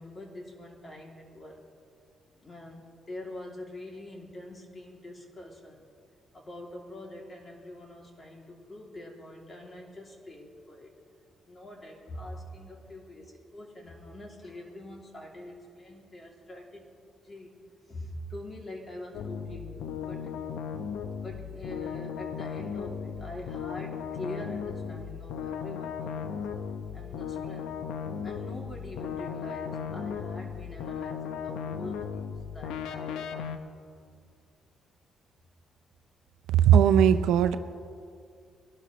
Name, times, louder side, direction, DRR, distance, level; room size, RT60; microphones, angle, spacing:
voice 1, 0.0-1.6 2.4-5.8 6.3-10.9 11.5-16.9 17.2-17.6 17.9-20.3 21.2-26.4 26.9-27.7 28.2-33.5, left 1 dB, 30° left, 0 dB, 2.7 m, -44 dB
sound 1, 19.1-33.6, left 7 dB, 90° left, 0.7 m, -36 dB
voice 2, 36.5-37.6, right 9 dB, 90° right, 11 dB, 0.5 m, -19 dB
21.5 x 12.0 x 3.1 m, 2.3 s
cardioid pair, 90°, 0 cm